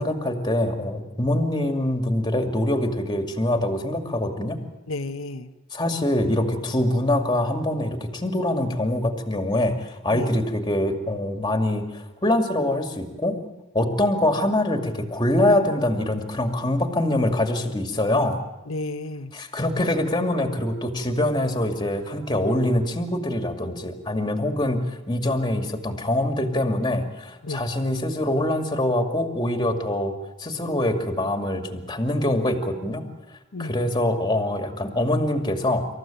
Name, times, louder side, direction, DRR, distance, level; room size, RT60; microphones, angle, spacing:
voice 1, 0.0-4.6 5.7-13.4 13.7-18.4 19.3-30.1 30.4-33.0 33.6-35.9, left 1 dB, 20° left, 5 dB, 2.4 m, -24 dB
voice 2, 4.9-5.5 10.1-10.3 18.7-19.3 27.4-27.7 33.5-33.9, left 2 dB, 90° left, 6 dB, 1.1 m, -32 dB
27.0 x 14.5 x 9.0 m, 1.1 s
head